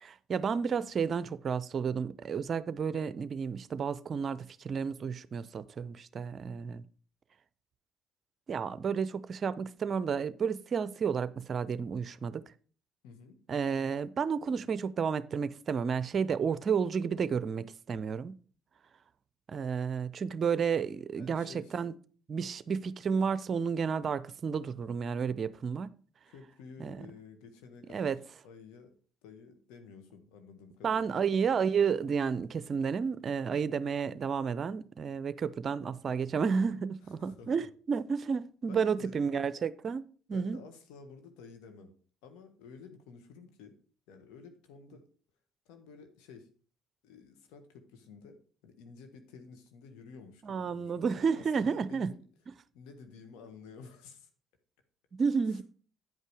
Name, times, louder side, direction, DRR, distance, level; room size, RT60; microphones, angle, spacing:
voice 1, 0.0-6.8 8.5-12.4 13.5-18.3 19.5-21.9 22.3-25.9 26.8-27.0 27.9-28.2 30.8-40.0 40.3-40.6 50.4-52.1 55.2-55.6, right 6 dB, 45° right, 0.6 m, -31 dB
voice 2, 13.0-13.4 21.1-21.8 26.3-28.2 28.4-28.9 29.2-31.2 37.0-37.7 38.7-39.2 40.3-41.9 42.2-43.7 44.1-45.0 45.6-46.5 47.0-52.2 52.7-54.3 55.4-55.6, left 5 dB, 75° left, 1.5 m, -52 dB
9.3 x 5.5 x 4.8 m
hypercardioid pair, 60°, 0 cm